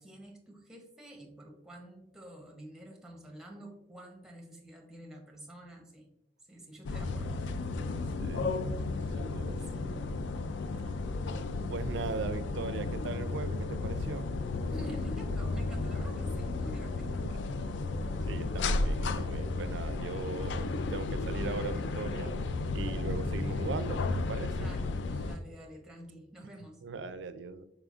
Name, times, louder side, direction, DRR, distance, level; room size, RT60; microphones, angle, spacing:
voice 1, 0.0-6.1 6.5-7.5 7.8-8.2 9.6-9.9 14.7-17.3 24.6-24.9 25.2-26.8, right 1 dB, 5° right, 1 dB, 0.6 m, -48 dB
sound 1, 6.8-25.4, left 3 dB, 75° left, 0.3 m, -33 dB
voice 2, 8.2-10.3 11.7-14.3 18.3-22.3 22.7-24.7 26.8-27.6, right 4 dB, 75° right, 13 dB, 0.4 m, -39 dB
4.9 x 4.4 x 2.4 m, 0.87 s
head